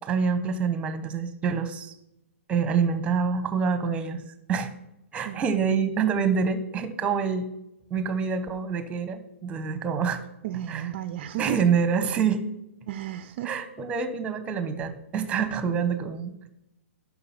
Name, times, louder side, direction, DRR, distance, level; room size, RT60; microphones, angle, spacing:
voice 1, 0.0-1.9 2.5-4.7 5.1-7.5 7.9-10.2 10.7-10.8 11.4-12.5 13.4-16.3, right 6 dB, 15° right, 11 dB, 1.1 m, -26 dB
voice 2, 5.2-5.5 10.4-11.6 12.0-12.2 12.9-13.6 15.7-15.9, right 11 dB, 45° right, 13 dB, 0.5 m, -33 dB
11.0 x 6.0 x 5.9 m, 0.85 s
hypercardioid pair, 125°, 7 cm